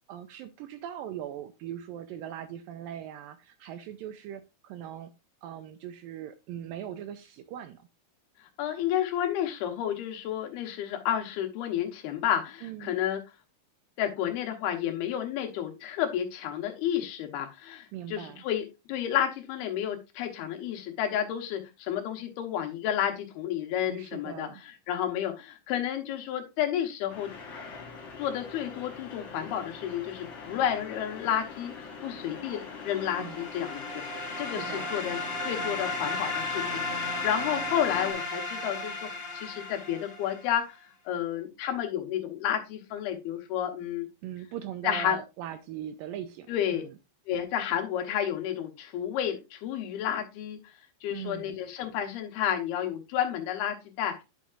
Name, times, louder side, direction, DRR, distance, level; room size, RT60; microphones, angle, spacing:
voice 1, 0.1-5.1 5.4-7.8 12.6-13.0 17.9-18.4 23.9-24.6 33.2-33.4 34.0-34.9 44.2-47.0 51.1-51.6, right 10 dB, 80° right, 9 dB, 2.1 m, -40 dB
voice 2, 8.6-13.2 14.0-27.3 28.2-35.2 35.4-39.1 39.3-40.8 41.1-44.1 44.8-45.2 46.5-46.8 47.3-50.6 51.0-54.1, left 10 dB, 80° left, 3 dB, 3.1 m, -31 dB
sound 1, 27.1-38.1, left 5 dB, 60° left, 1.2 m, -42 dB
sound 2, 32.8-40.5, left 3 dB, 30° left, 1.1 m, -35 dB
10.5 x 5.5 x 2.4 m, 0.25 s
omnidirectional pair, 4.5 m